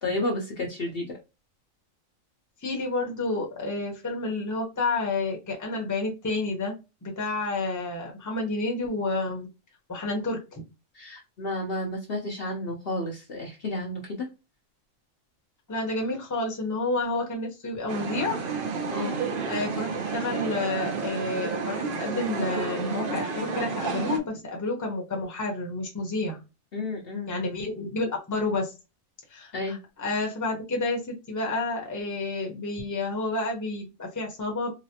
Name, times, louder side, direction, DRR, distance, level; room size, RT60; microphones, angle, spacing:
voice 1, 0.0-1.1 11.0-14.3 18.9-19.2 26.7-27.4 29.5-29.8, left 2 dB, 55° left, 0 dB, 0.8 m, -31 dB
voice 2, 2.6-9.5 9.9-10.6 15.7-18.4 19.0-26.4 27.3-28.7 29.3-34.7, left 2 dB, 15° left, 0 dB, 0.8 m, -30 dB
sound 1, 17.9-24.2, right 5 dB, 60° right, 0.6 m, -31 dB
4.0 x 2.0 x 2.8 m, 0.27 s
omnidirectional pair, 1.4 m